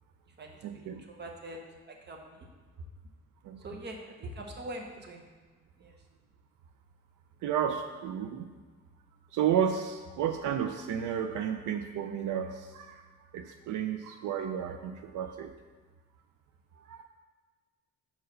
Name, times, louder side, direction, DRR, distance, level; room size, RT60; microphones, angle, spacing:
voice 1, 0.6-1.0 3.4-3.8 7.4-8.6 9.3-13.0 13.3-15.5 16.9-17.0, right 8 dB, 80° right, 6 dB, 0.5 m, -32 dB
voice 2, 1.2-1.6 2.1-2.2 3.6-5.2 5.8-5.9, right 1 dB, 35° right, 2 dB, 1.0 m, -41 dB
5.5 x 4.7 x 6.2 m, 1.4 s
cardioid pair, 150°, 30 cm